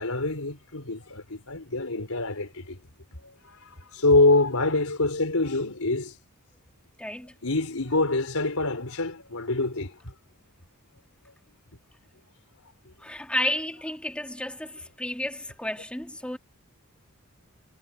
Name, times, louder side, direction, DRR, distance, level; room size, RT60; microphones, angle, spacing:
voice 1, 0.0-2.8 3.1-6.2 7.4-10.1, left 2 dB, 80° left, 4.0 m, -25 dB
voice 2, 7.0-7.3 13.0-16.4, left 1 dB, 5° left, 2.3 m, -32 dB
head